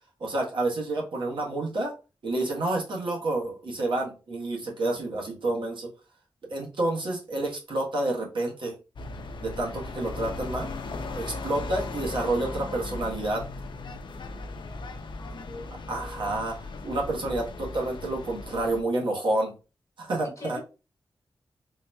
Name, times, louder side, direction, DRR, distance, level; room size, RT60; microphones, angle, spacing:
voice 1, 0.2-1.9 2.2-5.9 6.5-8.7 9.4-10.7 11.1-13.4 15.9-16.5 16.8-19.5 20.0-20.6, right 2 dB, 70° right, 1.2 m, -29 dB
sound 1, 9.0-18.8, left 3 dB, 65° left, 0.5 m, -37 dB
voice 2, 15.2-16.4 20.4-20.6, left 2 dB, 40° left, 1.3 m, -43 dB
3.8 x 2.7 x 2.3 m
cardioid pair, 65°, 9 cm